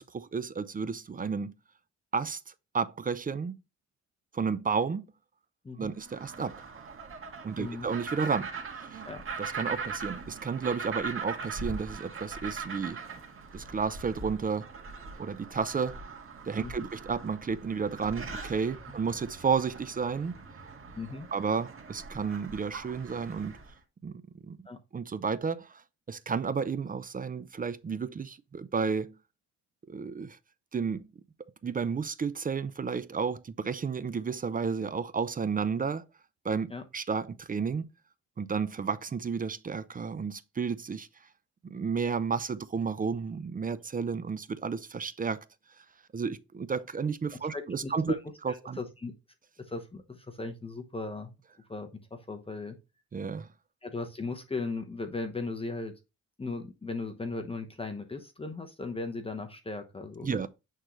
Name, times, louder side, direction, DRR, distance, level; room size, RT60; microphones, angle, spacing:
voice 1, 0.0-1.5 2.1-2.4 2.7-3.6 4.3-5.0 5.8-6.6 7.4-8.5 8.8-9.0 9.4-13.0 13.5-14.7 15.2-16.0 16.5-20.4 21.3-23.6 24.0-24.1 24.4-24.6 24.9-25.8 26.1-29.1 29.9-30.4 30.7-31.1 31.6-36.0 36.4-37.9 38.4-41.1 41.6-45.4 46.1-48.1 48.4-48.8 53.1-53.5 60.2-60.5, right 5 dB, 30° right, 0.6 m, -32 dB
voice 2, 5.6-6.0 7.6-7.9 9.0-9.2 16.6-16.7 21.0-21.3 24.7-24.8 36.7-36.8 47.5-48.2 48.5-49.1 49.6-51.3 51.7-52.8 53.8-55.9 56.4-60.5, left 3 dB, 20° left, 1.0 m, -37 dB
sound 1, 6.0-23.7, right 4 dB, 45° right, 1.9 m, -41 dB
9.0 x 3.8 x 3.1 m
cardioid pair, 90°, 30 cm